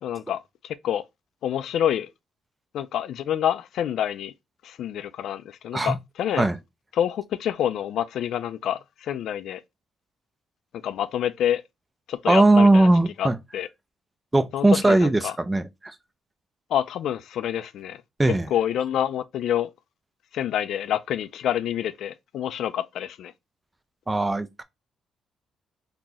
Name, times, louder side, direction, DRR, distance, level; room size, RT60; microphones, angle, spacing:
voice 1, 0.0-1.0 1.4-2.1 2.7-4.3 4.6-6.4 6.9-9.6 10.8-11.6 12.1-12.9 13.2-13.3 13.5-13.7 14.5-15.3 16.7-18.0 18.3-19.7 20.3-23.3, left 10 dB, 75° left, 0.3 m, -27 dB
voice 2, 12.3-13.4 14.3-15.7 18.2-18.5 24.1-24.6, right 2 dB, 15° right, 0.4 m, -19 dB
2.8 x 2.4 x 3.9 m
cardioid pair, 95°, 0 cm